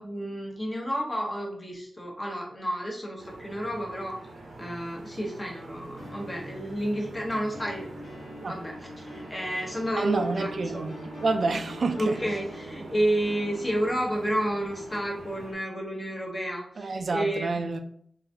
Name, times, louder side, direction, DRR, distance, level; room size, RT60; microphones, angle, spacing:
voice 1, 0.0-4.2 4.6-8.2 8.5-10.9 12.0-17.6, right 1 dB, 20° left, 1.0 m, -31 dB
sound 1, 3.2-15.5, right 2 dB, 90° right, 0.8 m, -45 dB
sound 2, 6.0-14.2, equal, 85° left, 1.5 m, -45 dB
voice 2, 10.0-11.0 11.2-12.2 16.8-17.8, right 3 dB, 50° right, 0.4 m, -28 dB
3.8 x 3.3 x 2.8 m
wide cardioid pair, 145°, 0 cm